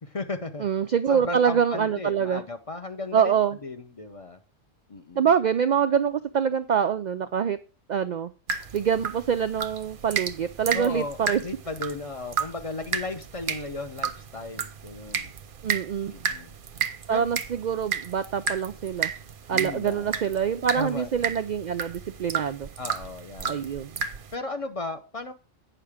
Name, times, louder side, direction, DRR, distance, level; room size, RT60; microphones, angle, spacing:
voice 1, 0.0-0.7 1.1-3.3 3.6-4.4 4.9-5.3 10.7-15.3 16.1-16.5 17.1-17.3 19.5-20.2 20.7-21.1 22.8-23.7 24.3-25.3, left 2 dB, 35° left, 7 dB, 0.7 m, -35 dB
voice 2, 0.6-2.4 3.1-3.6 5.2-7.6 7.9-8.3 8.7-11.4 15.6-16.1 17.1-19.1 19.5-22.7 23.4-23.9, right 7 dB, 80° right, 10 dB, 0.4 m, -25 dB
sound 1, 8.5-24.4, right 6 dB, 50° right, 0.8 m, -33 dB
9.0 x 5.8 x 4.9 m, 0.35 s
omnidirectional pair, 1.3 m